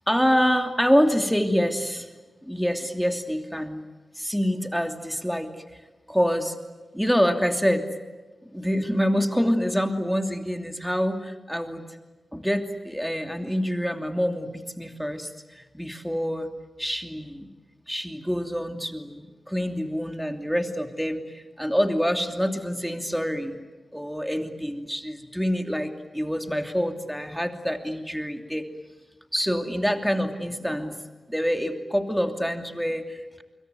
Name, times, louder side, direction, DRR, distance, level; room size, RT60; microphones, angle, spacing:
voice 1, 0.1-2.1 2.4-3.8 4.1-6.5 6.9-7.9 8.4-11.8 12.3-16.5 16.8-17.5 17.9-23.6 23.9-28.7 29.3-33.4, equal, ahead, 5 dB, 2.8 m, -26 dB
26.0 x 22.0 x 9.4 m, 1.2 s
cardioid pair, 40°, 0 cm